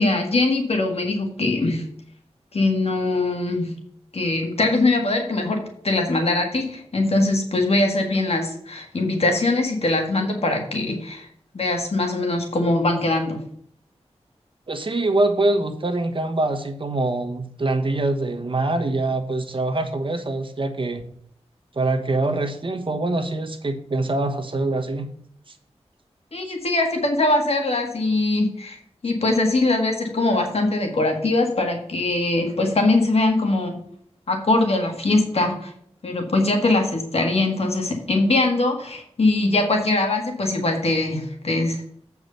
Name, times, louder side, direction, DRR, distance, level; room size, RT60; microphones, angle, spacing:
voice 1, 0.0-1.8 2.5-3.7 4.1-11.3 11.5-13.4 26.3-28.8 29.0-33.8 34.3-35.7 36.0-41.9, left 2 dB, 65° left, 3 dB, 1.7 m, -22 dB
voice 2, 14.7-21.1 21.7-25.1 25.5-25.6, right 2 dB, 50° right, 6 dB, 1.3 m, -24 dB
8.1 x 4.8 x 6.9 m, 0.64 s
wide cardioid pair, 75°, 11 cm